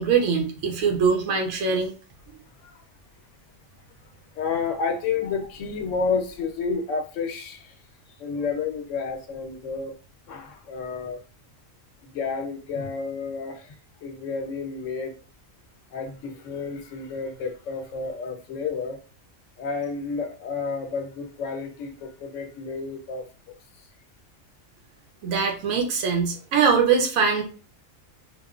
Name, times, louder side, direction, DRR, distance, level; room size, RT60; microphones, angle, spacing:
voice 1, 0.0-1.9 25.2-27.4, right 5 dB, 90° right, 1.1 m, -22 dB
voice 2, 4.3-7.8 8.2-9.9 10.3-11.2 12.0-13.7 14.0-15.1 15.9-19.0 19.6-23.3, left 5 dB, 75° left, 1.0 m, -30 dB
3.0 x 2.1 x 2.3 m
omnidirectional pair, 1.4 m